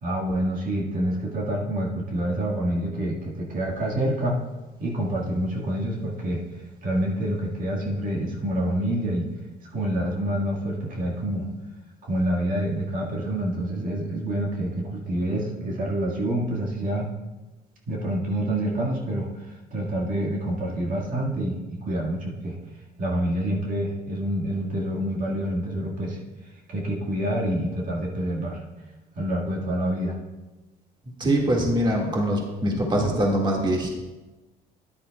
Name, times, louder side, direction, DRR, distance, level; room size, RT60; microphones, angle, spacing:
voice 1, 0.0-4.4 4.8-6.4 6.8-9.3 9.7-11.5 12.0-17.1 17.9-22.6 23.0-26.2 26.7-28.6 29.2-30.2, right 1 dB, 50° right, -2 dB, 1.9 m, -27 dB
voice 2, 31.2-33.9, right 1 dB, 25° right, 0 dB, 1.9 m, -23 dB
13.5 x 10.5 x 2.3 m, 1.1 s
cardioid pair, 110°, 17 cm